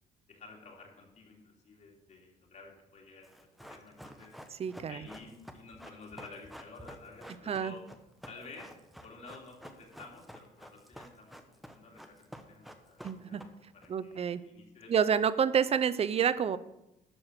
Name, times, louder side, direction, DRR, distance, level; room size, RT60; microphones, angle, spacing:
voice 1, 0.3-4.3 4.9-7.8 8.3-8.7 9.0-14.9, left 3 dB, 45° left, -1 dB, 3.1 m, -52 dB
Run, 3.2-13.9 14.1-14.2, equal, ahead, 1.0 m, -50 dB
voice 2, 4.6-5.0 7.5-7.7 13.0-13.4 13.9-14.4 14.9-16.6, right 7 dB, 35° right, 15 dB, 0.6 m, -28 dB
12.5 x 4.9 x 7.5 m, 0.89 s
cardioid pair, 110°, 17 cm